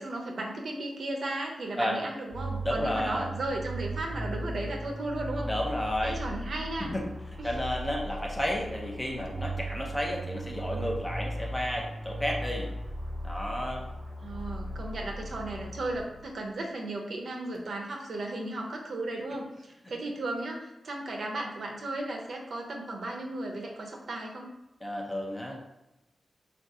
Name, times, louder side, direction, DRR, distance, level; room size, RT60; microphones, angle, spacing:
voice 1, 0.0-5.5 6.0-6.9 7.4-7.6 14.2-24.5, right 2 dB, 60° right, 1 dB, 0.6 m, -35 dB
sound 1, 2.3-16.4, right 1 dB, 10° right, 1.1 m, -37 dB
voice 2, 2.6-3.3 5.5-6.2 6.8-7.0 7.4-12.7 13.2-13.9 24.8-25.6, left 1 dB, 15° left, -1 dB, 0.5 m, -32 dB
3.7 x 2.3 x 2.6 m, 0.96 s
wide cardioid pair, 165°, 0 cm